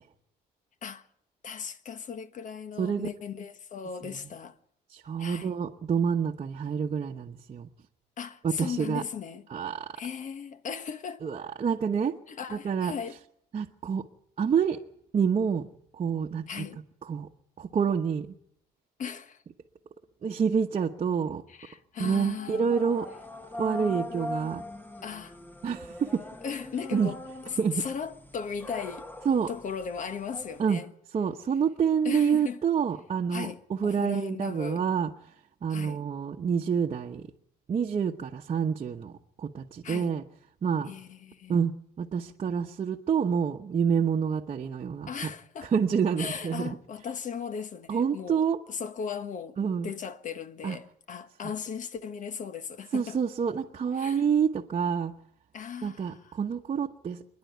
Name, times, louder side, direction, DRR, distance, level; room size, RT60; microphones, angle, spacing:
voice 1, 1.4-4.5 5.2-5.5 8.2-9.5 10.0-11.2 12.3-13.2 16.5-16.8 19.0-19.4 21.5-22.6 25.0-25.4 26.4-27.2 27.5-29.1 29.5-30.9 32.0-32.6 33.3-34.8 35.7-36.0 39.8-40.1 40.9-41.5 45.1-45.7 46.2-49.6 49.8-53.2 54.0-54.2 55.5-56.4, left 7 dB, 50° left, 1.4 m, -37 dB
voice 2, 2.8-3.1 4.0-4.2 4.9-7.7 8.4-9.0 9.5-9.9 11.2-12.1 12.5-12.9 13.5-14.0 14.4-14.8 15.1-15.7 15.9-16.6 17.0-17.3 17.6-18.3 20.2-21.4 22.0-23.1 23.6-24.6 25.6-26.2 26.9-27.1 27.6-27.8 29.2-29.5 30.6-30.8 31.1-35.1 35.6-37.2 37.7-39.1 39.4-40.2 40.6-40.9 41.5-41.7 42.0-45.1 45.6-46.8 47.9-48.6 49.6-49.9 50.6-50.8 52.9-55.1 55.8-57.2, right 7 dB, 35° right, 1.1 m, -27 dB
sound 1, 22.3-30.6, left 1 dB, 10° left, 1.2 m, -41 dB
26.5 x 10.5 x 9.4 m
cardioid pair, 110°, 17 cm